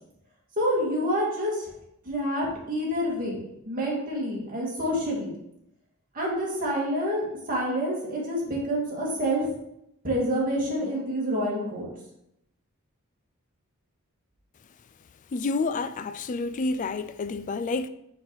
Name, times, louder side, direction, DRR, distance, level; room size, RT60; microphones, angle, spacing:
voice 1, 0.6-1.7 2.0-5.3 6.1-9.5 10.0-11.9, equal, 40° right, 2.0 m, -28 dB
voice 2, 15.3-17.9, left 3 dB, 35° left, 0.3 m, -29 dB
6.3 x 4.0 x 4.6 m
head